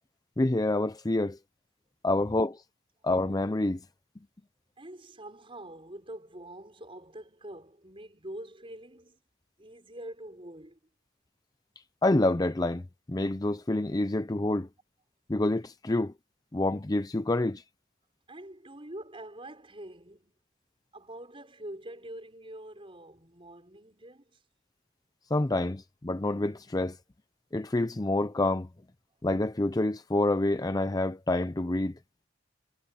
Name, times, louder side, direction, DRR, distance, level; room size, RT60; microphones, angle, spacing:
voice 1, 0.4-1.4 2.0-2.6 3.0-3.8 12.0-14.7 15.3-16.1 16.5-17.6 25.3-27.0 27.5-28.7 29.2-31.9, left 2 dB, 20° left, 0.5 m, -27 dB
voice 2, 4.8-9.2 9.6-10.8 18.3-20.3 20.9-24.4, right 1 dB, 25° right, 5.3 m, -45 dB
head